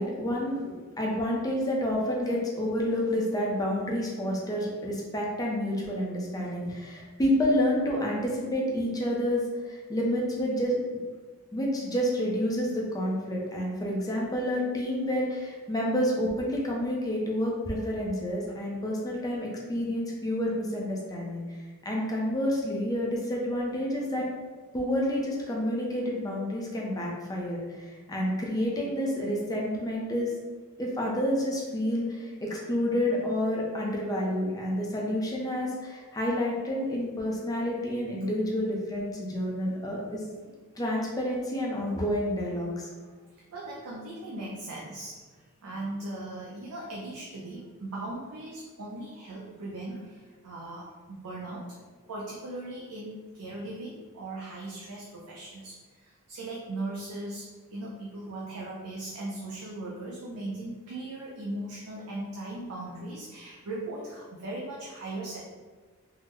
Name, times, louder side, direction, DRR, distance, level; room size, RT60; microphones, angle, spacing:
voice 1, 0.0-11.0 11.5-21.4 21.8-24.2 24.7-30.3 30.8-40.2 40.8-42.9, equal, 15° left, -2 dB, 0.5 m, -29 dB
voice 2, 43.5-51.8 52.1-65.4, right 2 dB, 75° right, -4 dB, 0.5 m, -38 dB
3.6 x 2.0 x 3.0 m, 1.4 s
head